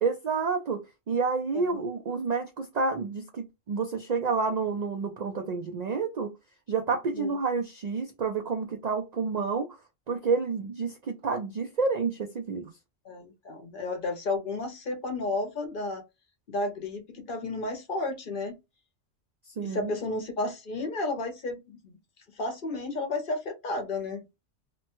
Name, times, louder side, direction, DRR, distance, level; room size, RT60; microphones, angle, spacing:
voice 1, 0.0-6.3 6.7-9.7 10.1-12.7 19.6-19.9, right 4 dB, 85° right, 0.3 m, -29 dB
voice 2, 1.5-1.8 7.1-7.4 13.0-16.0 16.5-18.6 19.6-22.0 22.4-24.2, left 2 dB, 50° left, 0.8 m, -32 dB
2.9 x 2.1 x 2.9 m
omnidirectional pair, 1.3 m